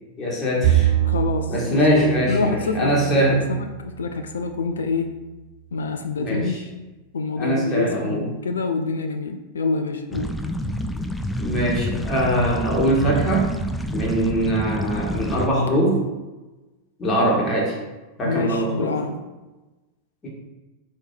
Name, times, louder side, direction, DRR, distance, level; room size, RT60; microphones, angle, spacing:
voice 1, 0.2-0.9 1.5-3.4 6.2-6.6 7.4-8.3 11.4-13.5 13.9-16.0 17.0-17.8 18.2-18.9 20.2-20.3, right 1 dB, 25° left, -4 dB, 1.8 m, -22 dB
Bowed string instrument, 0.6-4.1, right 12 dB, 50° right, 0.7 m, -24 dB
voice 2, 1.0-5.1 5.7-6.6 7.1-10.3 18.2-19.2, left 4 dB, 70° left, 6 dB, 0.5 m, -27 dB
sound 1, 10.1-15.5, left 1 dB, 5° left, 0.4 m, -28 dB
4.6 x 4.2 x 4.9 m, 1.1 s
figure-of-eight pair, 90°, 0 cm